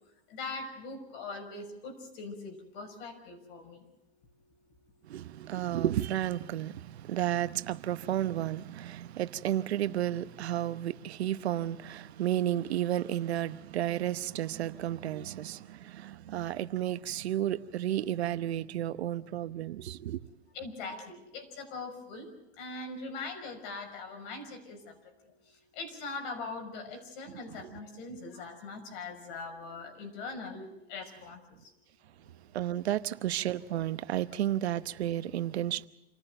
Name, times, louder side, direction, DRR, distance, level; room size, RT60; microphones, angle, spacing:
voice 1, 0.3-3.8 20.5-22.3 22.6-25.0 25.7-31.7, left 3 dB, 55° left, 6.1 m, -41 dB
voice 2, 5.0-20.2 27.5-27.8 32.5-35.9, right 12 dB, 85° right, 1.0 m, -32 dB
27.0 x 14.5 x 7.8 m
supercardioid pair, 140°, 31 cm